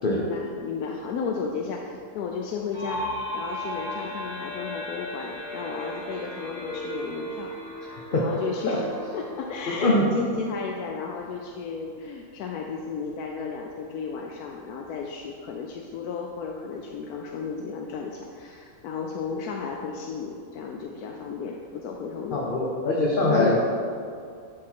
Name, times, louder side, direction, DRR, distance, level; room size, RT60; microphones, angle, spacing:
voice 1, 0.0-8.8 9.1-22.4 23.2-23.6, left 5 dB, 75° left, 1 dB, 1.0 m, -34 dB
sound 1, 2.7-10.4, left 1 dB, 30° right, 2.0 m, -36 dB
voice 2, 7.9-8.3 8.7-8.8 9.8-10.1 22.3-23.6, left 2 dB, 40° left, -4 dB, 0.8 m, -23 dB
11.0 x 3.8 x 4.5 m, 2.4 s
omnidirectional pair, 1.7 m